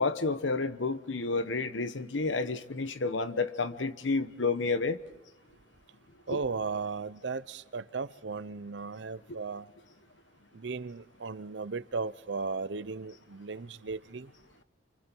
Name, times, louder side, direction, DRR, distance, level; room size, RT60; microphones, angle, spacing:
voice 1, 0.0-5.0 6.3-6.4, left 3 dB, 85° left, 1.0 m, -30 dB
voice 2, 6.3-9.6 10.5-14.3, right 4 dB, 70° right, 0.7 m, -36 dB
30.0 x 24.5 x 4.6 m
head